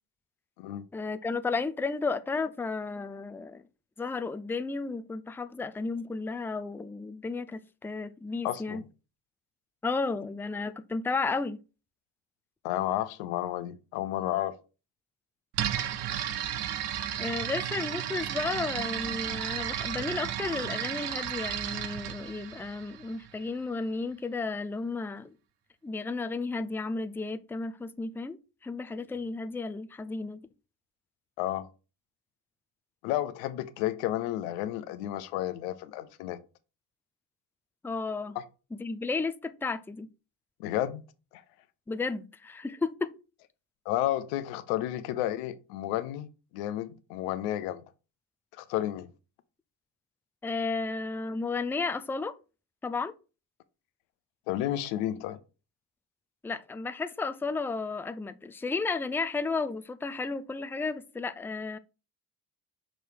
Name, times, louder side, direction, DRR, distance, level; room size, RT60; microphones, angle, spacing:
voice 1, 0.9-3.6 4.0-8.8 9.8-11.6 17.2-25.3 25.8-28.4 28.6-30.5 37.8-38.4 38.7-40.1 41.9-43.1 50.4-52.3 52.8-53.1 56.4-61.8, left 3 dB, 5° left, 0.4 m, -33 dB
voice 2, 8.4-8.8 12.6-14.6 31.4-31.7 33.0-36.4 40.6-41.0 41.3-41.4 43.9-46.3 46.5-47.8 48.6-49.1 54.5-55.4, left 13 dB, 85° left, 0.7 m, -31 dB
sound 1, 15.5-23.3, right 10 dB, 70° right, 0.8 m, -33 dB
6.2 x 3.3 x 4.6 m
supercardioid pair, 60°, 42 cm